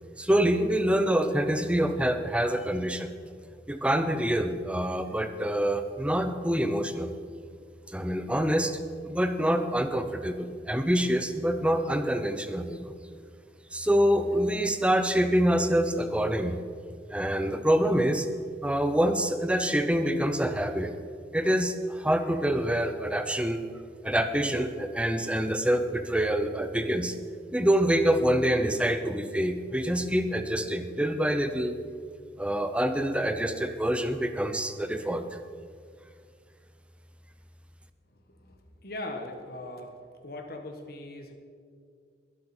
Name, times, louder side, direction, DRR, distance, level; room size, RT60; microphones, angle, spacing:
voice 1, 0.2-3.1 3.7-7.1 7.9-8.8 9.0-13.0 13.7-16.6 17.1-18.3 18.6-20.9 21.3-23.6 24.0-27.2 27.5-31.8 32.4-35.2, right 1 dB, 5° right, 8 dB, 0.6 m, -26 dB
voice 2, 38.1-39.9 40.2-41.3, left 2 dB, 55° left, 4 dB, 1.5 m, -40 dB
21.0 x 8.0 x 4.4 m, 2.1 s
head